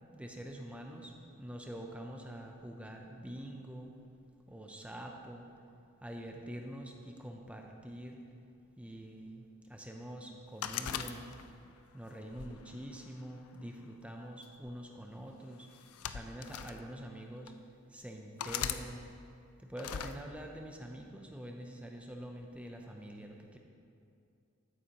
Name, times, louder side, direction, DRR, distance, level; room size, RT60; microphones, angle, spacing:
voice 1, 0.1-3.9 4.5-5.5 6.0-8.2 8.8-9.4 9.7-11.3 11.9-15.7 16.1-17.5 17.9-19.1 19.6-23.6, equal, 5° right, 2 dB, 0.6 m, -45 dB
sound 1, 10.6-11.7 12.3-13.5 14.4-14.7 15.7-16.8 17.5-17.6 18.4-18.8 19.8-20.1, left 9 dB, 80° left, 0.4 m, -39 dB
13.5 x 8.4 x 3.0 m, 2.5 s
head